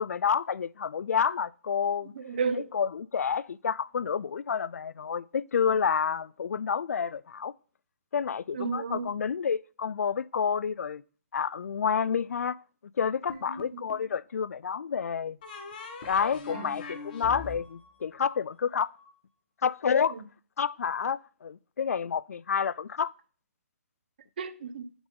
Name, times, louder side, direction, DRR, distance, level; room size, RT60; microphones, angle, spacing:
voice 1, 0.0-2.1 2.7-7.5 8.1-11.0 11.3-12.6 13.0-15.4 16.1-18.9 19.6-20.2 20.6-23.1, left 7 dB, 90° left, 0.3 m, -29 dB
voice 2, 2.2-2.7 8.5-9.1 13.7-13.8 16.5-16.7 20.1-20.2 24.4-24.9, right 5 dB, 40° right, 0.6 m, -32 dB
sound 1, 13.3-14.1 15.4-19.1, left 4 dB, 35° left, 1.0 m, -42 dB
7.8 x 3.8 x 3.7 m
hypercardioid pair, 170°, 8 cm